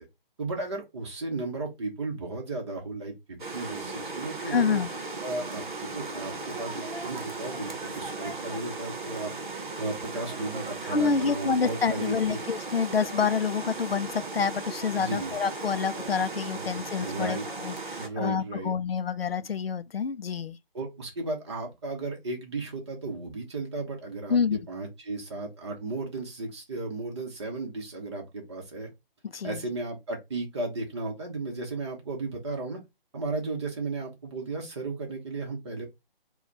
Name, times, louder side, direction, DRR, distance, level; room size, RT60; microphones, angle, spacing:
voice 1, 0.4-3.1 3.5-4.8 5.2-9.3 9.8-12.4 15.0-15.3 16.5-16.7 17.0-17.4 18.0-18.7 20.7-28.9 29.4-32.8 33.1-35.9, right 3 dB, 30° right, 1.1 m, -35 dB
sound 1, 3.4-18.1, right 3 dB, 55° right, 1.0 m, -37 dB
voice 2, 4.4-4.9 10.8-20.6 24.3-24.6 29.3-29.6, left 6 dB, 75° left, 0.5 m, -28 dB
4.7 x 2.3 x 4.1 m
figure-of-eight pair, 150°, 30 cm